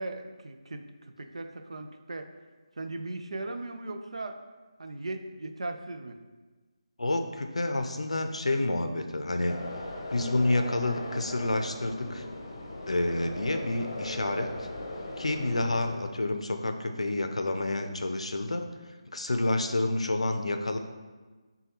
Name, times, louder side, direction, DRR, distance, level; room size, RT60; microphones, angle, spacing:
voice 1, 0.0-2.3 2.8-4.4 4.8-6.2, right 2 dB, 75° right, 6 dB, 0.4 m, -38 dB
voice 2, 7.0-9.6 10.1-12.3 12.9-14.7 15.2-18.7 19.1-20.8, left 2 dB, 85° left, 6 dB, 0.5 m, -29 dB
sound 1, 9.5-16.0, left 1 dB, 50° left, 0.7 m, -38 dB
6.3 x 2.2 x 2.9 m, 1.3 s
figure-of-eight pair, 160°, 3 cm